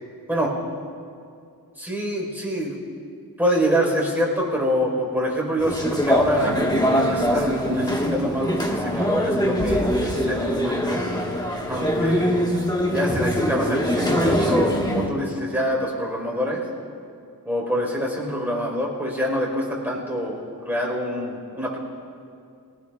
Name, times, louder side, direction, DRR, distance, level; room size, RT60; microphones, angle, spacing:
voice 1, 1.8-2.7 3.4-6.6 6.9-11.1 11.7-12.3 12.9-16.6 17.4-21.8, equal, 5° right, -3 dB, 4.5 m, -25 dB
sound 1, 5.6-15.1, equal, 10° left, 1.6 m, -23 dB
22.5 x 19.0 x 2.4 m, 2.4 s
wide cardioid pair, 85°, 39 cm